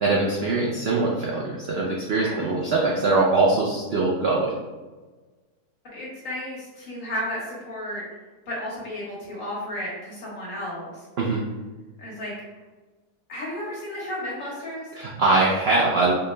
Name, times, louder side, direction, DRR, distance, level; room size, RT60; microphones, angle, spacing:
voice 1, 0.0-4.5 11.2-11.4 14.9-16.1, right 3 dB, 80° right, -3 dB, 0.5 m, -22 dB
voice 2, 5.9-8.0 8.5-11.0 12.0-12.3 13.3-14.9, left 1 dB, 55° left, -5 dB, 1.6 m, -33 dB
4.4 x 2.1 x 3.2 m, 1.3 s
omnidirectional pair, 1.7 m